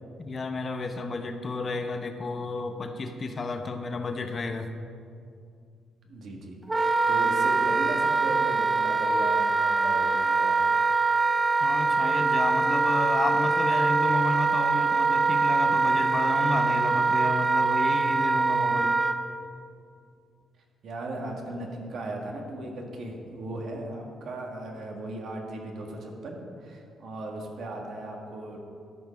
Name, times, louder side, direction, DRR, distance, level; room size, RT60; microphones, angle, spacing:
voice 1, 0.2-4.7 11.6-19.0, left 3 dB, 40° left, 7 dB, 0.8 m, -32 dB
voice 2, 6.0-10.8 20.8-28.6, right 1 dB, 65° right, 1 dB, 1.6 m, -37 dB
Wind instrument woodwind instrument, 6.7-19.2, right 4 dB, 20° right, 0.5 m, -23 dB
12.5 x 5.4 x 5.1 m, 2.4 s
cardioid pair, 90°, 0 cm